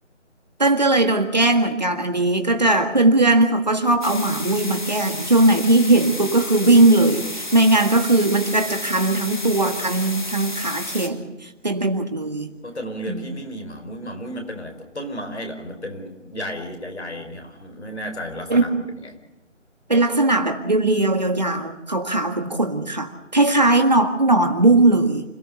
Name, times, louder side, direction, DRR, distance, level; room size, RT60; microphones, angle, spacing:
voice 1, 0.6-12.5 13.1-13.2 18.5-18.8 19.9-25.2, right 2 dB, 35° right, 5 dB, 1.8 m, -19 dB
sound 1, 4.0-11.1, left 2 dB, 40° left, 1.8 m, -32 dB
voice 2, 12.6-19.2, equal, 60° left, 6 dB, 4.8 m, -33 dB
27.0 x 16.5 x 6.9 m, 0.97 s
figure-of-eight pair, 180°, 37 cm